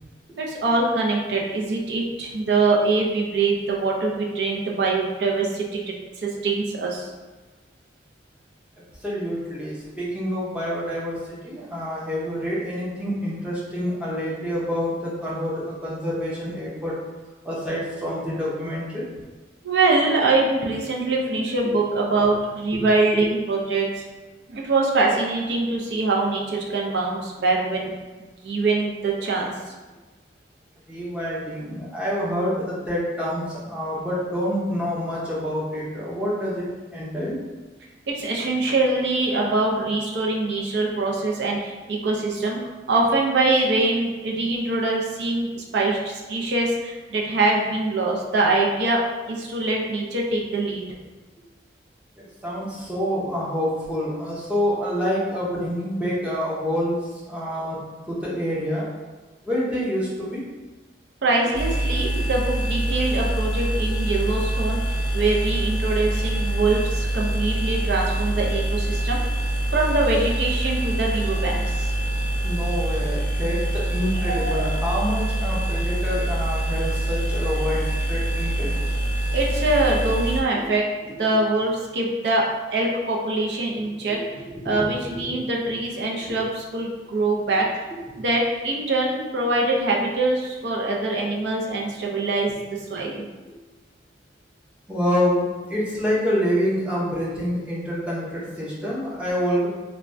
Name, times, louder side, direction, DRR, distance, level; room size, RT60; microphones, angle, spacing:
voice 1, 0.4-7.1 19.6-24.0 24.5-27.9 28.4-29.5 38.1-42.6 42.9-49.0 49.3-50.8 61.2-64.8 65.1-69.2 69.7-71.9 74.1-74.7 79.3-80.9 81.2-82.5 82.7-84.2 84.6-87.8 88.2-93.3, right 2 dB, 70° right, -2 dB, 0.5 m, -23 dB
voice 2, 9.0-16.9 17.4-19.1 22.7-22.8 30.9-37.4 52.2-57.8 58.0-58.9 59.4-60.4 72.4-78.7 80.6-80.7 83.8-84.2 84.5-84.9 85.1-85.4 86.3-86.4 87.9-88.2 94.9-99.7, equal, 5° right, -7 dB, 0.6 m, -27 dB
sound 1, 61.5-80.4, right 1 dB, 45° left, 0.4 m, -25 dB
3.2 x 2.1 x 2.5 m, 1.2 s
head